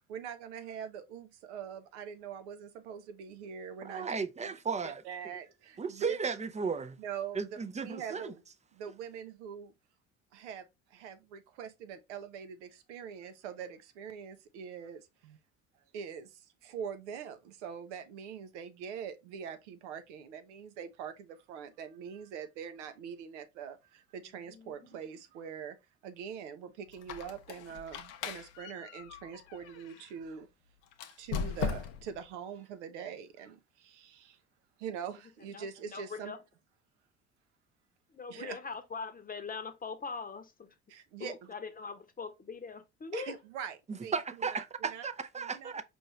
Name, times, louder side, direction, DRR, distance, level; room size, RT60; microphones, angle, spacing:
voice 1, 0.0-4.2 4.4-4.6 4.8-6.2 7.0-8.4 8.7-9.7 10.3-15.4 15.9-25.8 26.0-30.5 31.2-34.4 34.8-36.3 38.3-38.6 40.9-41.5 43.1-45.0 45.4-45.7, right 7 dB, 80° right, 0.6 m, -43 dB
voice 2, 3.8-5.0 5.8-7.0 7.3-8.3 43.9-45.8, right 5 dB, 20° right, 0.5 m, -35 dB
voice 3, 24.5-24.9 35.5-36.4 38.1-40.7 41.2-43.3, left 5 dB, 25° left, 0.8 m, -42 dB
Squeak, 26.9-30.1 30.9-32.2, left 6 dB, 75° left, 0.7 m, -39 dB
4.6 x 2.6 x 3.1 m
hypercardioid pair, 60°, 35 cm